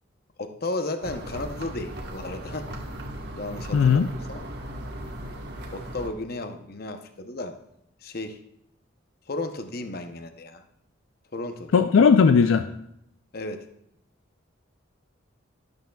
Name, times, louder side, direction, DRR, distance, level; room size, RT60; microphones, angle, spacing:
voice 1, 0.4-2.7 3.3-4.4 5.7-7.6 8.0-8.4 9.3-10.6 11.3-11.7 13.3-13.7, left 2 dB, 50° left, 7 dB, 0.7 m, -34 dB
sound 1, 1.0-6.1, right 1 dB, 55° right, 1.2 m, -37 dB
voice 2, 3.7-4.1 11.7-12.7, left 6 dB, 75° left, 8 dB, 0.4 m, -17 dB
12.0 x 11.5 x 2.3 m, 0.75 s
head